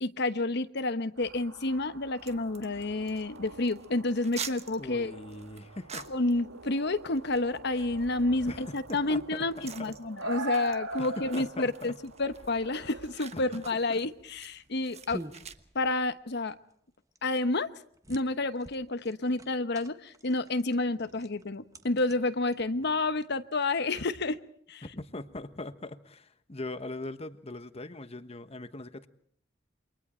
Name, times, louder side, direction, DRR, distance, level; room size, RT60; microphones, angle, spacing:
voice 1, 0.0-5.1 6.1-11.9 12.2-15.2 15.7-16.6 17.2-17.7 18.1-24.4 24.7-24.8, left 2 dB, 60° left, 11 dB, 1.1 m, -29 dB
sound 1, 1.2-13.7, right 3 dB, 90° right, 1.6 m, -44 dB
sound 2, 2.2-15.5, right 7 dB, 35° right, 1.2 m, -48 dB
voice 2, 4.8-6.1 8.5-10.0 11.0-12.0 13.3-13.4 13.7-14.0 24.8-29.1, left 2 dB, 30° left, 11 dB, 1.3 m, -41 dB
sound 3, 13.7-23.1, right 1 dB, 15° right, 1.3 m, -50 dB
28.5 x 24.0 x 4.4 m, 0.62 s
head